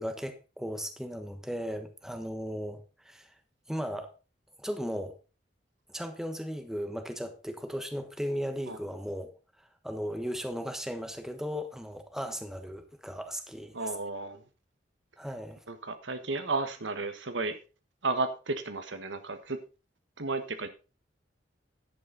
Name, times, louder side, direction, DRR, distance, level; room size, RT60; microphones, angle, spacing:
voice 1, 0.0-3.4 3.7-4.1 4.6-5.2 5.9-9.3 9.8-13.7 15.2-15.6, equal, 5° right, 1.2 m, -36 dB
voice 2, 13.7-14.4 15.7-17.6 18.0-19.6 20.2-20.7, right 3 dB, 85° right, 1.3 m, -33 dB
10.5 x 8.7 x 3.9 m
head